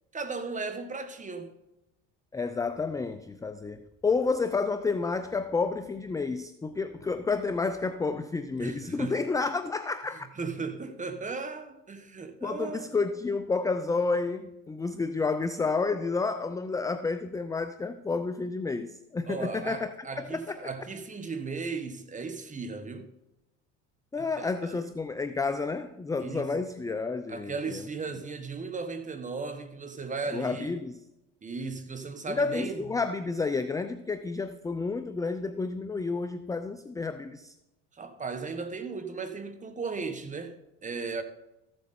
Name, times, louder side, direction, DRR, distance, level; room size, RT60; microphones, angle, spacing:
voice 1, 0.1-1.5 8.6-9.2 10.4-12.9 19.3-23.1 24.2-24.8 26.2-26.5 27.3-30.7 31.4-32.8 37.9-41.2, right 4 dB, 20° right, 1.3 m, -36 dB
voice 2, 2.3-10.3 12.4-20.6 24.1-27.8 30.3-31.0 32.3-37.5, left 4 dB, 10° left, 0.4 m, -30 dB
14.0 x 7.7 x 4.3 m
supercardioid pair, 90°, 35 cm